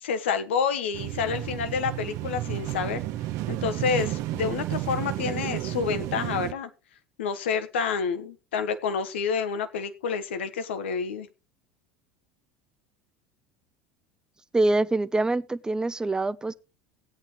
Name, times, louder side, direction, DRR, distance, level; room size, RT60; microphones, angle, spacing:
voice 1, 0.0-3.0 3.5-6.7 7.2-11.3, left 6 dB, 80° left, 1.3 m, -28 dB
sound 1, 0.9-6.5, right 15 dB, 55° right, 0.9 m, -32 dB
voice 2, 14.5-16.5, right 2 dB, 10° right, 0.7 m, -25 dB
17.0 x 9.1 x 3.1 m
hypercardioid pair, 80°, 6 cm